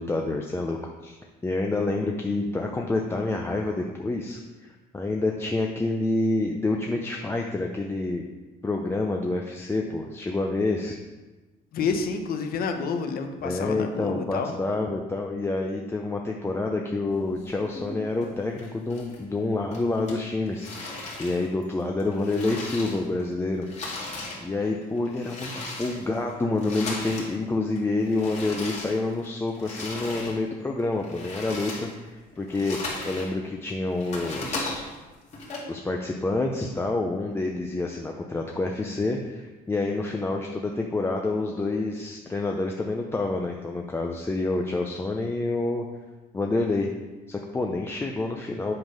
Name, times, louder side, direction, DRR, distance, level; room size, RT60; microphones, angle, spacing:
voice 1, 0.0-8.2 8.6-11.0 13.4-23.7 24.4-34.8 35.7-45.8 46.3-46.9 47.3-48.7, left 2 dB, 15° left, 1 dB, 0.5 m, -28 dB
voice 2, 11.7-14.5, left 5 dB, 65° left, 6 dB, 0.9 m, -29 dB
sound 1, 17.1-18.3 18.6-19.4 19.7-23.3 23.5-27.3 27.7-30.4 30.8-33.3 33.7-35.6, left 2 dB, 40° left, 2.0 m, -37 dB
7.9 x 3.8 x 5.1 m, 1.2 s
cardioid pair, 110°, 17 cm